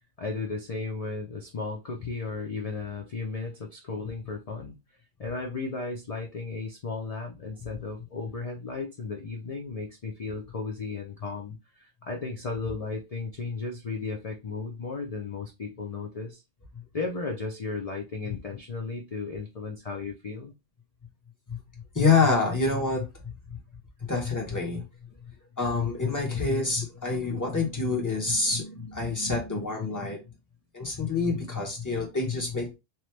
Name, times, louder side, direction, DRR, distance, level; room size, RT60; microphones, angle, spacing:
voice 1, 0.2-4.8 5.2-16.4 16.9-20.5, left 4 dB, 65° left, 0.3 m, -35 dB
voice 2, 21.9-23.1 23.5-23.6 24.0-24.8 25.6-30.2 30.7-32.7, left 4 dB, 15° left, 0.9 m, -27 dB
3.0 x 2.3 x 3.2 m
omnidirectional pair, 1.3 m